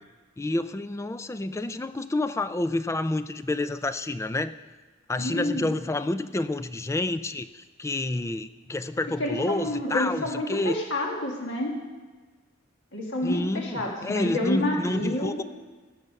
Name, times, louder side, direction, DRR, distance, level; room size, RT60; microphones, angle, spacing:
voice 1, 0.4-4.5 5.1-10.8 13.2-15.4, left 2 dB, 15° left, 12 dB, 0.3 m, -29 dB
voice 2, 5.2-5.6 9.2-11.7 12.9-15.4, left 1 dB, 60° left, -1 dB, 1.8 m, -29 dB
16.5 x 7.1 x 5.3 m, 1.3 s
head